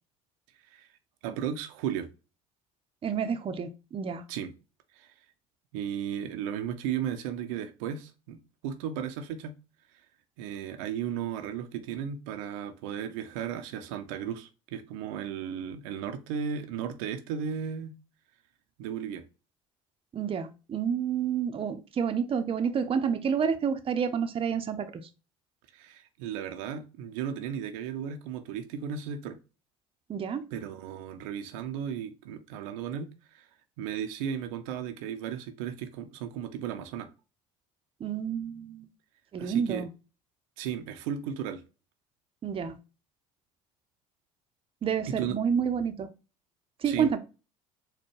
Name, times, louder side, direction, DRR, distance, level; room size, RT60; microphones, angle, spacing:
voice 1, 1.2-2.1 4.3-4.5 4.9-5.1 5.7-8.4 8.6-9.5 10.4-17.9 18.8-19.2 25.7-29.4 30.5-33.5 33.8-37.1 39.4-39.9 40.6-41.6 45.1-45.4 46.8-47.1, right 8 dB, 75° right, 8 dB, 0.5 m, -35 dB
voice 2, 3.0-4.2 20.1-25.0 30.1-30.4 38.0-38.9 39.3-39.9 42.4-42.8 44.8-46.1 46.8-47.2, right 7 dB, 35° right, 8 dB, 0.6 m, -29 dB
4.3 x 2.2 x 3.1 m, 0.31 s
hypercardioid pair, 70°, 17 cm